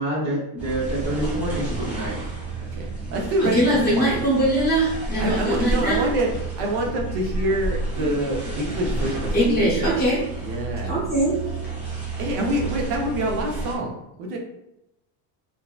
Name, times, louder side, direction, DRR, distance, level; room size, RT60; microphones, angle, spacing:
voice 1, 0.0-2.1, right 1 dB, 45° right, 0.9 m, -27 dB
sound 1, 0.6-13.7, right 2 dB, 5° right, 0.5 m, -30 dB
voice 2, 2.7-3.7 3.9-4.2 5.2-6.3 6.5-10.1 10.4-11.0 12.2-14.4, right 1 dB, 65° right, 0.7 m, -26 dB
voice 3, 3.5-6.0 9.3-10.2 10.8-11.4, right 1 dB, 20° left, 0.9 m, -21 dB
2.6 x 2.0 x 2.3 m
cardioid pair, 160°, 44 cm